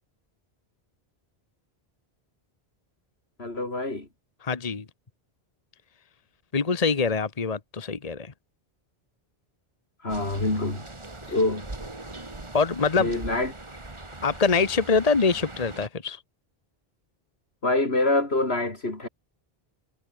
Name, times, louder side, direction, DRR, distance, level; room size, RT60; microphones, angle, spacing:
voice 1, 3.4-4.1 10.0-10.8 11.3-11.7 13.0-13.5 17.6-19.1, left 2 dB, 80° left, 4.7 m, -25 dB
voice 2, 4.4-4.9 6.5-8.3 12.5-13.2 14.2-16.2, left 4 dB, 40° left, 1.3 m, -24 dB
sound 1, 10.1-15.9, right 2 dB, 30° right, 2.0 m, -41 dB
omnidirectional pair, 1.0 m